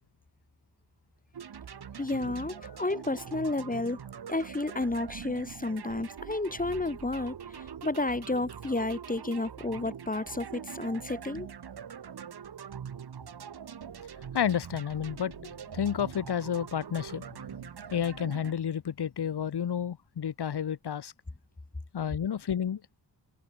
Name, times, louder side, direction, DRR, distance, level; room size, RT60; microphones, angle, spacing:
sound 1, 1.3-18.5, right 8 dB, 65° right, 2.6 m, -43 dB
voice 1, 2.0-4.0 4.3-11.5, left 2 dB, 20° left, 4.5 m, -31 dB
voice 2, 14.3-17.4 17.9-21.1 21.9-22.8, left 8 dB, 65° left, 2.4 m, -31 dB
cardioid pair, 80°, 42 cm